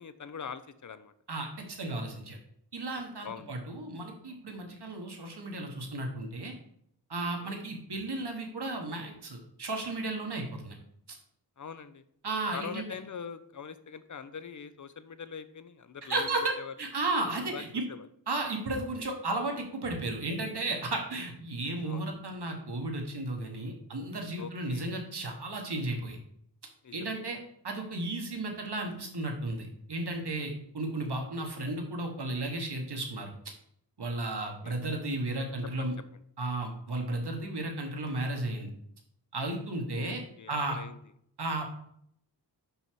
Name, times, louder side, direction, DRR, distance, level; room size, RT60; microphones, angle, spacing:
voice 1, 0.0-1.1 3.2-3.5 7.4-7.5 11.6-12.0 12.5-16.3 16.6-16.7 17.5-17.6 17.9-18.1 21.8-22.1 24.4-24.9 26.8-27.1 34.3-34.8 35.8-35.9 40.0-41.0, left 6 dB, 45° left, 13 dB, 0.5 m, -43 dB
voice 2, 1.3-2.4 2.7-6.5 7.1-10.8 11.1-11.2 12.2-12.9 16.1-16.5 16.8-17.8 18.3-26.2 26.9-27.4 27.6-33.3 34.0-35.9 36.4-38.7 39.3-40.2 40.5-40.8 41.4-41.7, right 2 dB, 70° right, 2 dB, 1.4 m, -34 dB
5.5 x 5.5 x 4.5 m, 0.70 s
wide cardioid pair, 75°, 41 cm